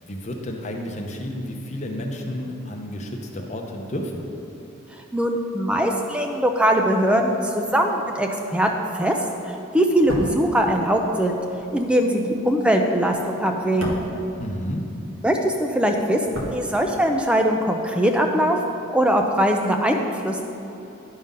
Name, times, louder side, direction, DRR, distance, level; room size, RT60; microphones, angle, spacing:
voice 1, 0.1-4.2 14.4-14.9, left 1 dB, 35° left, 1 dB, 0.7 m, -31 dB
voice 2, 5.1-9.2 9.5-11.4 11.7-14.0 15.2-18.6 18.9-20.4, equal, 5° right, 3 dB, 0.4 m, -21 dB
sound 1, 9.9-15.2 15.5-17.3 17.6-17.7, equal, 80° right, 1.3 m, -34 dB
11.0 x 3.7 x 5.4 m, 2.9 s
head